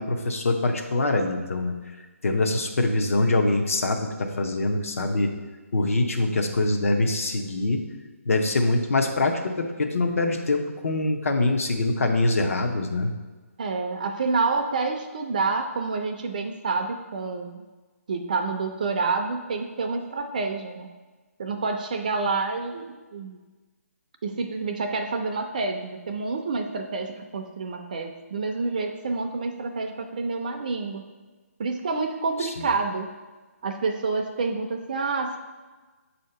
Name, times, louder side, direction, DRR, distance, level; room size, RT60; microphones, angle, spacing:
voice 1, 0.0-1.8 2.2-5.3 5.7-7.8 8.2-13.2 32.4-32.6, left 2 dB, 65° left, 4 dB, 0.7 m, -24 dB
voice 2, 13.6-17.6 18.1-20.9 21.4-23.4 24.2-31.0 31.6-33.1 33.6-35.4, right 4 dB, 30° right, 5 dB, 0.4 m, -28 dB
6.5 x 2.8 x 5.4 m, 1.3 s
hypercardioid pair, 165°, 8 cm